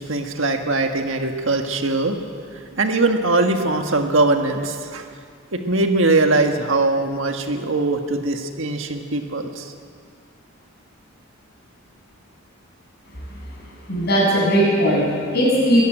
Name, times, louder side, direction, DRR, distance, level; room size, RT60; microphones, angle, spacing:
voice 1, 0.0-2.2 2.7-5.1 5.5-9.7, right 2 dB, 65° right, 5 dB, 1.6 m, -21 dB
voice 2, 13.9-15.8, equal, 50° left, -3 dB, 7.4 m, -18 dB
21.5 x 14.0 x 9.1 m, 2.1 s
head